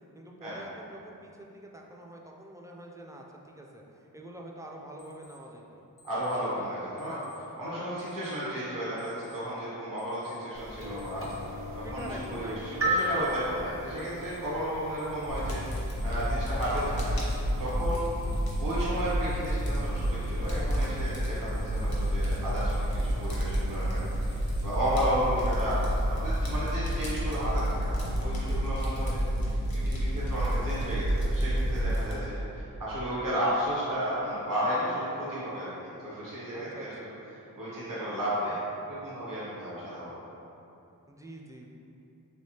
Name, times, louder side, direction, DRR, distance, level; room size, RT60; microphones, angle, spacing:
voice 1, 0.1-5.8 6.5-6.7 7.1-7.5 11.8-12.9 26.4-26.8 36.5-37.2 41.1-41.7, right 1 dB, 10° right, -1 dB, 0.3 m, -46 dB
Alarm, 5.0-5.4 6.0-6.4 7.0-7.4 8.0-8.4 9.0-9.4 10.0-10.4 11.0-11.4 12.0-12.4 13.0-13.4 14.0-14.4 15.0-24.9, left 2 dB, 50° left, 0.4 m, -58 dB
voice 2, 6.0-17.2 17.6-37.1 37.6-38.6 38.9-40.1, equal, 65° right, -9 dB, 0.9 m, -33 dB
sound 1, 10.5-26.6, right 1 dB, 40° right, 0.7 m, -39 dB
Fire, 15.3-32.1, equal, 80° left, 0.7 m, -29 dB
3.4 x 3.0 x 2.8 m, 2.8 s
wide cardioid pair, 45°, 36 cm